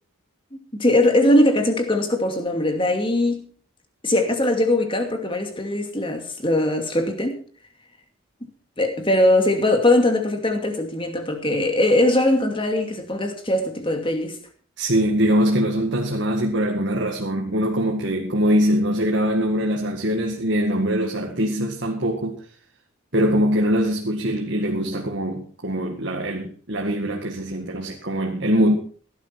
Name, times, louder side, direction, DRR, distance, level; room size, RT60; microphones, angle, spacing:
voice 1, 0.5-3.5 4.0-7.4 8.8-14.4, left 1 dB, 25° left, 2.4 m, -21 dB
voice 2, 14.8-22.4 23.1-28.8, equal, 55° right, 2.0 m, -22 dB
17.0 x 11.5 x 4.6 m
head